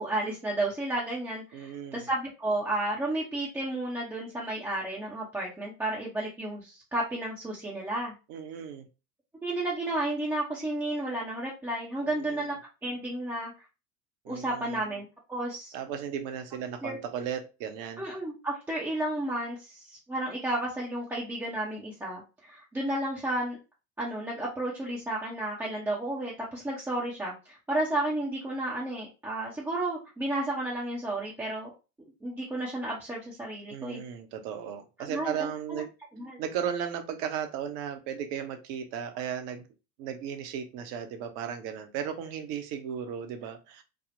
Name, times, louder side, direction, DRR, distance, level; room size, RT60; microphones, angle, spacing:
voice 1, 0.0-8.1 9.4-12.5 12.8-13.5 14.3-15.7 16.8-17.0 18.0-23.6 24.0-31.7 32.2-34.0 35.0-35.8 36.2-36.4, right 1 dB, 5° right, 0.5 m, -32 dB
voice 2, 1.5-2.1 8.3-8.9 12.0-12.5 14.2-14.8 15.7-18.0 33.7-35.9 36.4-39.7 40.0-43.8, right 8 dB, 45° right, 0.7 m, -35 dB
3.4 x 2.0 x 2.5 m
figure-of-eight pair, 75°, 46 cm